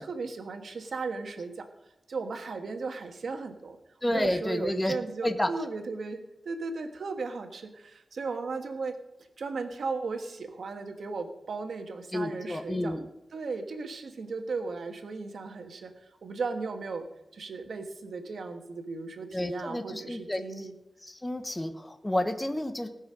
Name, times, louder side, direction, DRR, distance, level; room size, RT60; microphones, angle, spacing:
voice 1, 0.0-1.6 2.1-3.8 4.1-8.9 9.4-13.0 13.3-15.9 16.2-17.0 17.3-20.7, right 4 dB, 90° right, 5 dB, 1.4 m, -36 dB
voice 2, 4.0-4.9 5.2-5.5 12.1-13.1 19.3-20.4 21.1-22.9, left 1 dB, 15° left, 7 dB, 1.1 m, -30 dB
19.0 x 6.3 x 6.3 m, 0.91 s
wide cardioid pair, 90°, 0 cm